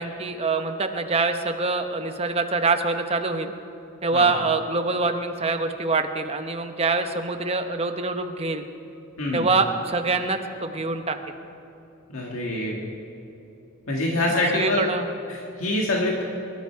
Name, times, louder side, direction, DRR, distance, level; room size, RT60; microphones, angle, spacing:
voice 1, 0.0-3.5 4.0-8.6 9.3-11.2 14.3-15.1, right 3 dB, 30° right, 6 dB, 0.9 m, -25 dB
voice 2, 12.1-12.8 13.9-14.9 15.3-16.2, left 1 dB, 70° left, -2 dB, 1.9 m, -25 dB
24.0 x 12.0 x 4.7 m, 2.9 s
head